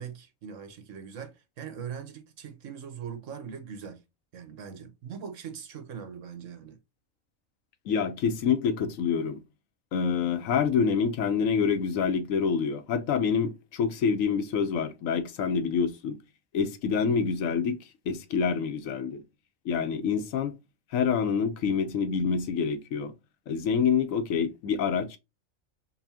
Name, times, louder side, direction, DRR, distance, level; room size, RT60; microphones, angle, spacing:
voice 1, 0.0-4.0 4.3-6.8, right 7 dB, 70° right, 1.2 m, -41 dB
voice 2, 7.9-9.4 9.9-16.2 16.5-17.8 18.1-19.2 19.6-20.5 20.9-23.1 23.5-25.2, left 6 dB, 80° left, 1.1 m, -27 dB
5.4 x 2.5 x 2.7 m
omnidirectional pair, 1.4 m